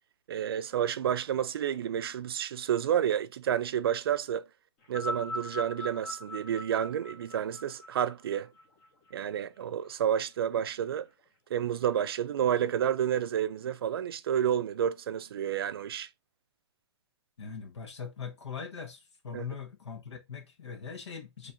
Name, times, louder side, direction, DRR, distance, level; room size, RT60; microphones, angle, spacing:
voice 1, 0.3-4.4 4.9-8.5 9.1-11.1 11.5-16.1 19.3-19.4, right 9 dB, 55° right, 0.4 m, -30 dB
sound 1, 4.8-9.4 10.3-10.4, left 1 dB, 15° left, 0.6 m, -40 dB
voice 2, 17.4-21.5, left 6 dB, 80° left, 1.4 m, -41 dB
4.2 x 3.1 x 2.5 m
hypercardioid pair, 165°, 15 cm